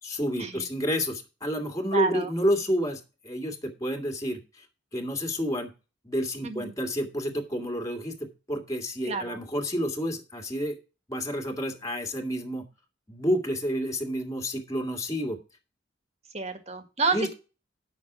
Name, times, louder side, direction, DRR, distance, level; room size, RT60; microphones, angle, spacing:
voice 1, 0.0-4.7 4.9-5.7 6.0-10.8 11.1-12.7 13.1-15.4 17.1-17.3, equal, 20° left, 3 dB, 2.0 m, -30 dB
voice 2, 1.9-2.3 6.4-6.7 9.0-9.4 16.3-17.3, right 4 dB, 35° right, 7 dB, 1.7 m, -29 dB
9.2 x 6.1 x 6.0 m, 0.31 s
head